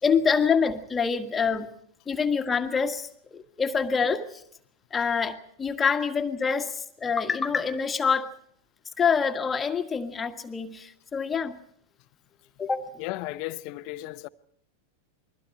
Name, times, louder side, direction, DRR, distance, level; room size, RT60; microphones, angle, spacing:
voice 1, 0.0-1.7 2.1-4.4 4.9-8.3 9.0-11.6 12.6-12.9, left 6 dB, 15° left, 1.7 m, -26 dB
voice 2, 13.0-14.3, left 17 dB, 45° left, 0.8 m, -35 dB
29.0 x 22.0 x 4.4 m
figure-of-eight pair, 90°, 0 cm